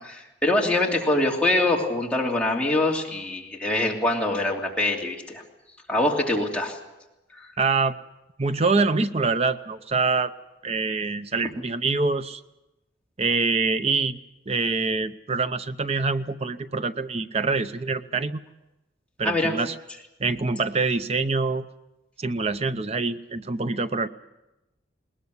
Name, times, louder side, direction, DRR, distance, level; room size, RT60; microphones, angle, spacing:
voice 1, 0.0-5.4 5.9-6.8 7.4-7.5 19.2-19.5, left 2 dB, 5° left, -2 dB, 2.9 m, -24 dB
voice 2, 7.6-8.0 8.4-10.3 10.6-12.4 13.2-14.2 14.5-18.4 19.2-19.7 20.2-21.7 22.2-24.1, right 4 dB, 35° right, 11 dB, 0.7 m, -25 dB
20.5 x 20.0 x 8.2 m, 0.97 s
head